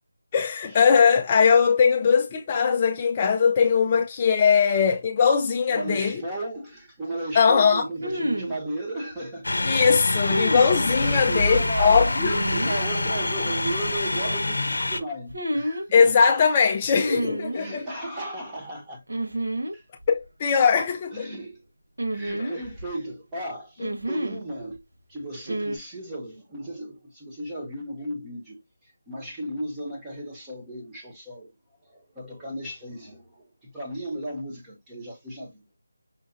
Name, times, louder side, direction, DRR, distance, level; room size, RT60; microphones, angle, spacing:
voice 1, 0.3-6.2 7.3-7.9 9.6-12.4 15.9-17.9 20.1-21.2 22.4-22.5, left 6 dB, 20° left, 0.4 m, -20 dB
voice 2, 5.7-9.5 10.9-12.2 12.5-16.2 17.5-19.0 19.7-19.9 21.1-21.6 22.1-24.8 25.1-31.5 31.8-35.6, right 1 dB, 10° right, 1.0 m, -35 dB
sound 1, 6.0-6.1 8.0-8.6 10.3-10.8 12.2-12.8 15.3-15.9 17.0-17.6 19.1-19.7 20.0-20.1 22.0-22.9 23.8-24.4 25.4-25.8, right 1 dB, 75° right, 1.1 m, -29 dB
sound 2, 9.4-15.0, left 2 dB, 75° left, 0.7 m, -26 dB
5.7 x 2.5 x 2.5 m
figure-of-eight pair, 170°, 0 cm